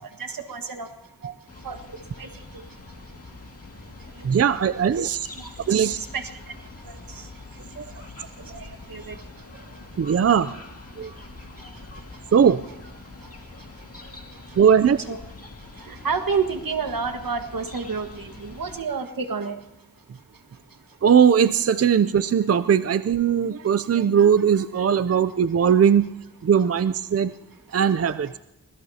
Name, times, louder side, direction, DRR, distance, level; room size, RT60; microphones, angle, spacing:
voice 1, 0.2-0.9 1.6-1.8 2.2-2.6 5.7-6.2 6.9-7.2 8.5-9.2 14.7-15.2 15.8-19.5, right 5 dB, 75° right, 6 dB, 1.6 m, -30 dB
sound 1, 1.5-18.8, left 3 dB, 45° left, 2.2 m, -44 dB
voice 2, 4.2-5.3 5.7-6.0 7.8-7.9 8.5-8.6 10.0-10.5 11.0-11.1 12.3-12.6 14.6-15.0 21.0-26.1 26.4-27.3 27.7-28.3, right 7 dB, 45° right, 13 dB, 0.5 m, -19 dB
25.5 x 20.0 x 2.8 m, 0.96 s
wide cardioid pair, 70°, 34 cm